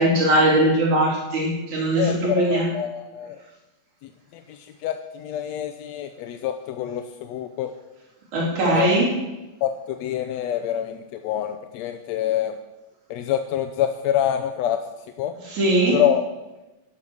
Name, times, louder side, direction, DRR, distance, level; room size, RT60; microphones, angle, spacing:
voice 1, 0.0-2.7 8.3-9.1 15.5-16.0, right 1 dB, 70° right, -3 dB, 5.0 m, -20 dB
voice 2, 2.0-3.4 4.3-7.7 8.7-8.9 9.6-12.6 13.1-14.8 15.2-15.3 15.9-16.2, left 10 dB, 75° left, 7 dB, 1.8 m, -26 dB
12.0 x 11.0 x 6.2 m, 1.0 s
omnidirectional pair, 3.5 m